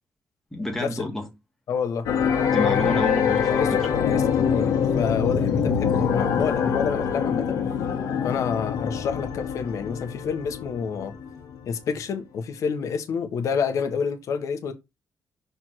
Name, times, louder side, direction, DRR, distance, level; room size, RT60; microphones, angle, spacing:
voice 1, 0.5-1.3 2.5-3.6, left 1 dB, 5° left, 1.6 m, -29 dB
voice 2, 1.7-2.1 3.6-7.6 8.2-11.1 11.7-14.7, left 6 dB, 65° left, 1.1 m, -28 dB
sound 1, 2.1-11.7, left 7 dB, 85° left, 1.5 m, -24 dB
6.3 x 3.5 x 4.5 m
wide cardioid pair, 170°, 6 cm